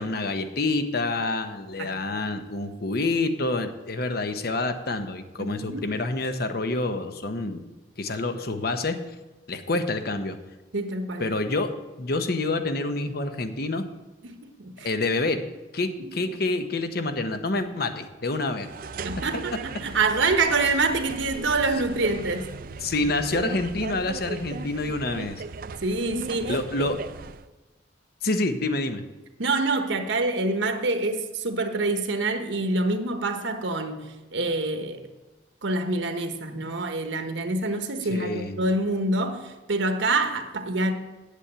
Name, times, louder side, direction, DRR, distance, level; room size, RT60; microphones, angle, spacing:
voice 1, 0.0-7.6 8.0-9.0 9.5-10.4 11.2-13.9 14.8-15.4 15.7-18.7 22.8-25.4 26.4-27.0 28.2-29.0 38.1-38.6, left 2 dB, 55° left, 0.9 m, -27 dB
voice 2, 5.4-5.9 10.7-11.3 14.2-14.9 16.0-16.1 19.0-19.5 19.8-22.5 25.8-26.9 29.4-35.1 35.6-40.9, right 2 dB, 90° right, 1.0 m, -26 dB
sound 1, 18.6-27.5, right 4 dB, 50° right, 0.4 m, -37 dB
8.4 x 7.2 x 8.6 m
head